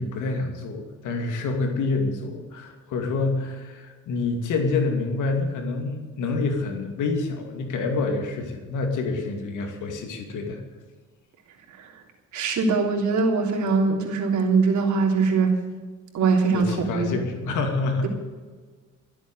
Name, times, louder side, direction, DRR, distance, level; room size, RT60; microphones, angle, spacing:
voice 1, 0.0-10.6 16.5-18.1, left 3 dB, 85° left, 4 dB, 2.5 m, -27 dB
voice 2, 12.3-15.5 16.1-17.1, right 4 dB, 75° right, 0 dB, 3.4 m, -22 dB
14.0 x 8.1 x 9.2 m, 1.4 s
cardioid pair, 90°, 30 cm